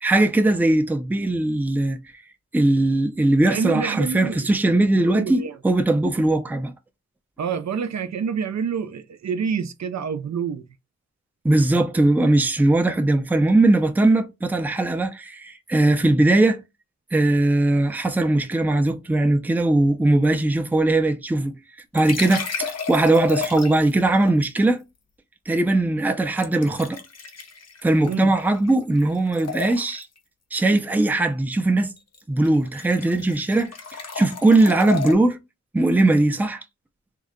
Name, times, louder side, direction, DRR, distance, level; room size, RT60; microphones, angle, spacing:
voice 1, 0.0-2.0 2.5-6.7 11.4-16.6 17.1-21.6 21.9-24.8 25.5-27.0 27.8-30.1 30.5-31.9 32.3-33.7 34.1-35.4 35.7-36.6, right 2 dB, 5° right, 0.4 m, -20 dB
voice 2, 3.5-4.5 4.9-5.6 7.4-10.7 28.0-28.3, right 6 dB, 65° right, 0.5 m, -27 dB
sound 1, 21.9-24.0 26.4-28.7 29.0-30.2 32.0-32.2 32.4-35.1, left 5 dB, 60° left, 0.8 m, -33 dB
3.7 x 2.1 x 3.6 m
wide cardioid pair, 115°, 29 cm